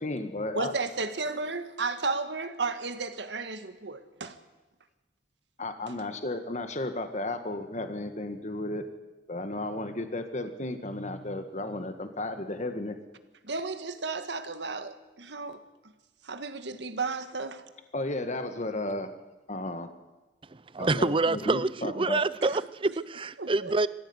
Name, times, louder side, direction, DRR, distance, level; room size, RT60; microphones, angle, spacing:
voice 1, 0.0-0.7 5.6-8.8 9.3-13.0 17.9-19.1 19.5-19.9 20.8-22.2, left 2 dB, 40° left, 8 dB, 1.7 m, -34 dB
voice 2, 0.5-4.4 13.4-15.6 16.2-17.6 23.4-23.7, right 3 dB, 75° right, 9 dB, 1.7 m, -33 dB
voice 3, 20.5-23.9, right 3 dB, 30° right, 17 dB, 0.6 m, -27 dB
21.5 x 15.5 x 9.6 m, 1.1 s
head